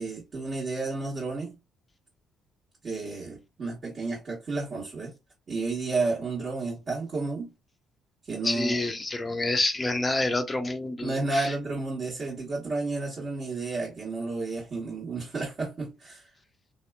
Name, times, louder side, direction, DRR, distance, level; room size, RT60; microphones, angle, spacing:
voice 1, 0.0-1.5 2.8-5.1 5.5-7.5 8.2-8.8 11.0-16.3, right 3 dB, 45° right, 1.3 m, -31 dB
voice 2, 8.4-11.5, left 2 dB, 25° left, 0.5 m, -28 dB
3.4 x 2.8 x 2.2 m
figure-of-eight pair, 45°, 0 cm